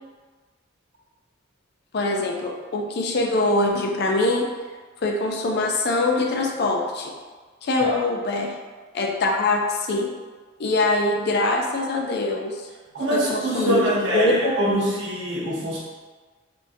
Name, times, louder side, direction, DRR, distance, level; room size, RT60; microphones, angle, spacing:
voice 1, 1.9-4.5 5.0-7.1 7.6-8.5 8.9-10.1 10.6-12.6 13.1-14.9, left 2 dB, 55° left, 1 dB, 0.4 m, -23 dB
voice 2, 12.9-15.8, equal, 70° right, -6 dB, 0.9 m, -24 dB
3.5 x 2.5 x 2.6 m, 1.4 s
head